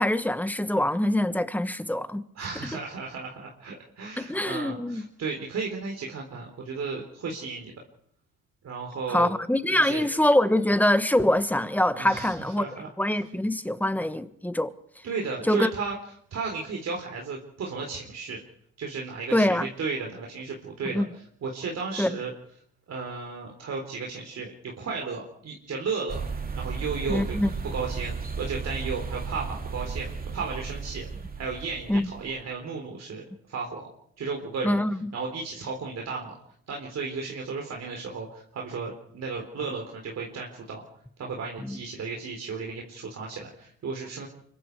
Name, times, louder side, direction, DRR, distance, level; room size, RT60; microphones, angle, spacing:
voice 1, 0.0-2.2 4.2-5.0 9.1-12.6 13.0-14.7 15.5-15.7 19.3-19.7 20.9-21.0 22.0-22.2 27.1-27.5 31.9-32.1 34.6-35.1 41.6-41.8, left 1 dB, 5° left, 1.3 m, -24 dB
voice 2, 2.4-7.7 8.6-9.3 9.7-10.1 11.9-12.9 15.0-16.0 16.3-18.4 18.8-22.3 22.9-26.2 26.5-27.4 27.7-31.1 31.4-33.9 34.2-34.8 35.1-36.4 36.7-40.8 41.2-44.3, right 4 dB, 60° right, 4.0 m, -34 dB
sound 1, 26.1-32.4, right 5 dB, 30° right, 2.8 m, -34 dB
25.0 x 22.5 x 4.8 m
cardioid pair, 90°, 30 cm